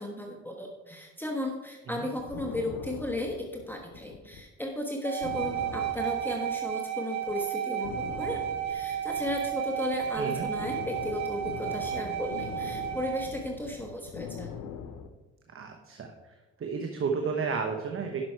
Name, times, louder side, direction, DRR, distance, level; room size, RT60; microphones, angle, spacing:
voice 1, 0.0-3.4 3.7-7.9 8.2-14.5, left 1 dB, 5° left, 1 dB, 1.2 m, -35 dB
sound 1, 1.9-4.4 4.7-4.8 5.2-6.9 7.2-7.4 7.8-15.1, left 6 dB, 90° left, 0.9 m, -42 dB
sound 2, 5.0-13.3, right 11 dB, 65° right, 1.5 m, -33 dB
voice 2, 15.5-18.2, right 5 dB, 45° right, 3 dB, 1.1 m, -32 dB
11.0 x 6.0 x 4.6 m, 1.2 s
cardioid pair, 90°, 30 cm